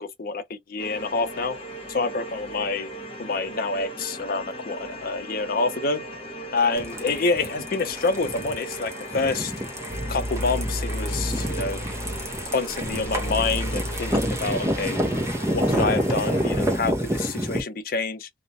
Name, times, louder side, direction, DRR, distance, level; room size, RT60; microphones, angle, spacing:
voice 1, 0.0-1.6 1.9-2.9 3.2-6.0 6.5-9.5 10.1-11.8 12.5-15.0 15.5-18.3, left 3 dB, 55° left, 0.5 m, -27 dB
sound 1, 0.8-16.6, right 1 dB, 30° left, 1.0 m, -38 dB
sound 2, 6.8-17.6, equal, 15° right, 0.6 m, -28 dB
sound 3, 9.9-15.0, left 1 dB, 50° right, 0.8 m, -32 dB
2.4 x 2.1 x 2.6 m
head